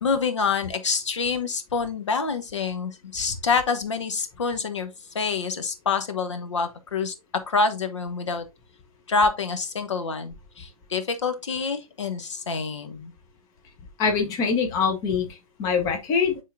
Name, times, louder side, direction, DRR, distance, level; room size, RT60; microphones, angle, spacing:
voice 1, 0.0-8.5 9.1-13.1, left 4 dB, 55° left, 0.9 m, -27 dB
voice 2, 14.0-16.4, left 5 dB, 20° left, 1.0 m, -24 dB
10.0 x 3.7 x 2.6 m
figure-of-eight pair, 125°, 18 cm